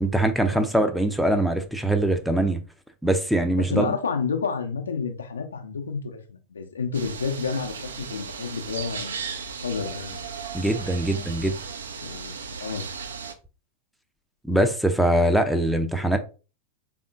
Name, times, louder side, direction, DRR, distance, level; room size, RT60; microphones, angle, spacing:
voice 1, 0.0-2.6 3.0-3.8 10.5-11.5 14.4-16.2, right 1 dB, ahead, 0.5 m, -22 dB
voice 2, 3.6-9.1 9.6-10.2 12.0-12.9, left 5 dB, 70° left, 0.6 m, -30 dB
sound 1, 6.9-13.3, right 5 dB, 70° right, 0.5 m, -36 dB
3.5 x 3.5 x 2.5 m
figure-of-eight pair, 90°, 0 cm